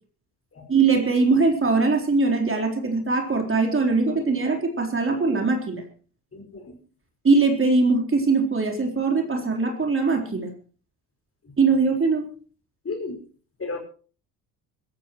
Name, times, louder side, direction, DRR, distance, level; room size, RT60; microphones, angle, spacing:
voice 1, 0.7-5.8 7.2-10.5 11.6-12.3, right 4 dB, 25° right, 1 dB, 4.0 m, -21 dB
voice 2, 6.3-6.8 12.8-13.2 13.6-13.8, left 3 dB, 30° left, 3 dB, 5.5 m, -33 dB
25.0 x 14.5 x 3.1 m, 0.40 s
hypercardioid pair, 60°, 46 cm